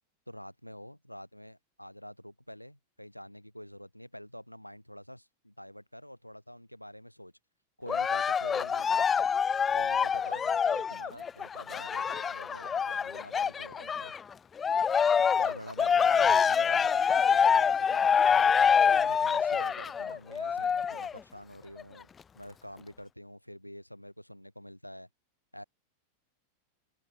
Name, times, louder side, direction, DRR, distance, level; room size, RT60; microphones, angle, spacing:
voice 1, 0.3-7.3 7.8-9.3 9.7-14.1 15.3-18.5 18.8-22.1 22.3-25.1 25.5-25.6, equal, 90° left, 7.8 m, -47 dB
Cheering, 7.9-14.2 14.6-21.2 21.8-21.9, left 7 dB, 20° left, 1.3 m, -26 dB
open air
figure-of-eight pair, 90°, 0 cm